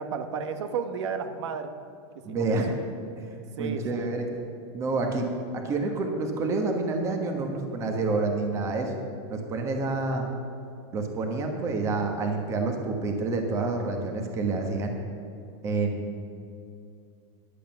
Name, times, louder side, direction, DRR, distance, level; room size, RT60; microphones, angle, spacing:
voice 1, 0.0-1.7 2.3-2.6 3.6-4.1, right 6 dB, 80° right, 8 dB, 1.1 m, -32 dB
voice 2, 2.2-2.8 3.6-4.3 4.7-5.3 5.5-8.9 9.3-10.3 10.9-14.9 15.6-16.2, right 3 dB, 20° right, 3 dB, 1.1 m, -28 dB
10.5 x 8.3 x 6.9 m, 2.5 s
supercardioid pair, 170°, 15 cm